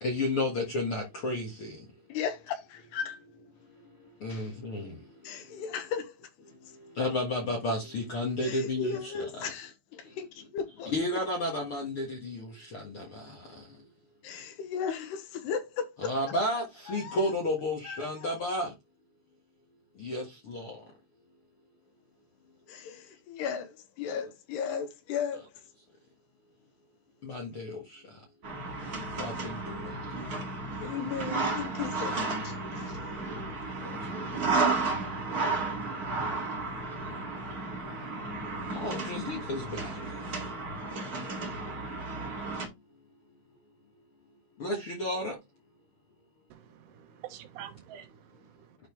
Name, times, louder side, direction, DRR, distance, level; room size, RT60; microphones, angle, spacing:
voice 1, 0.0-1.7 4.2-4.9 7.0-9.5 10.9-13.0 16.0-18.7 20.0-20.7 27.2-27.8 29.1-29.8 33.8-33.9 38.8-39.9 44.6-45.3, left 1 dB, 55° left, 1.5 m, -32 dB
voice 2, 2.1-3.2 4.3-4.5 5.2-6.2 8.4-10.9 14.2-16.1 16.9-17.3 17.8-18.3 22.7-25.4 30.8-32.2 32.4-33.0, left 7 dB, 80° left, 3.3 m, -36 dB
sound 1, 28.4-42.7, right 3 dB, 40° right, 1.4 m, -33 dB
voice 3, 46.5-48.8, right 11 dB, 80° right, 3.2 m, -47 dB
11.5 x 4.3 x 3.1 m
omnidirectional pair, 4.7 m